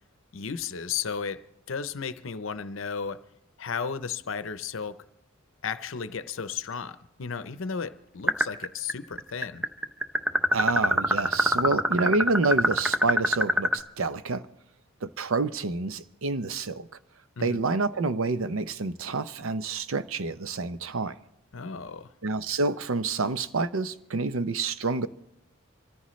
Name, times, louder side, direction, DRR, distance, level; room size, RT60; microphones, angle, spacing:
voice 1, 0.3-3.3 3.6-5.0 5.6-9.7 17.4-17.6 21.5-22.1, left 6 dB, 65° left, 0.7 m, -34 dB
sound 1, 8.3-8.9 9.2-13.8, equal, 5° right, 0.7 m, -23 dB
voice 2, 10.5-14.5 15.0-16.9 17.4-21.2 22.2-25.1, right 3 dB, 75° right, 0.7 m, -28 dB
25.5 x 14.0 x 3.2 m
head